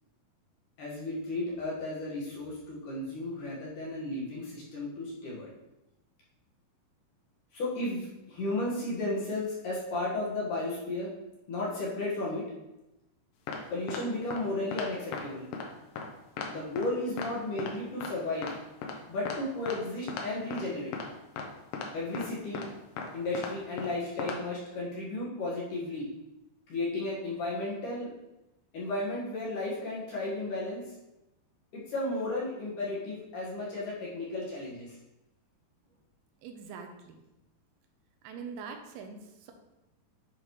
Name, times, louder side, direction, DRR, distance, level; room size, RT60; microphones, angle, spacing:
voice 1, 0.8-5.5 7.5-11.1 11.5-12.4 13.7-15.5 16.4-18.5 19.1-21.0 21.9-22.7 23.1-26.1 26.7-28.1 28.7-30.8 31.7-34.9, left 2 dB, 60° left, -6 dB, 2.8 m, -34 dB
sound 1, 13.5-13.6 13.9-14.0 14.3-14.4 14.7-14.9 15.1-15.2 15.5-15.7 16.0-16.1 16.4-16.5 16.8-16.9 17.2-17.3 17.6-17.7 18.0-18.1 18.4-18.5 18.8-18.9 19.3-19.4 19.7-19.8 20.1-20.3 20.5-20.7 20.9-21.1 21.4-21.5 21.7-21.9 22.1-22.3 22.5-22.7 23.0-23.1 23.3-23.5 23.8-23.9 24.2-24.4, left 5 dB, 75° left, 2.2 m, -36 dB
voice 2, 36.4-37.2 38.2-39.5, right 5 dB, 80° right, 5 dB, 2.6 m, -43 dB
10.5 x 3.7 x 3.1 m, 0.94 s
omnidirectional pair, 4.6 m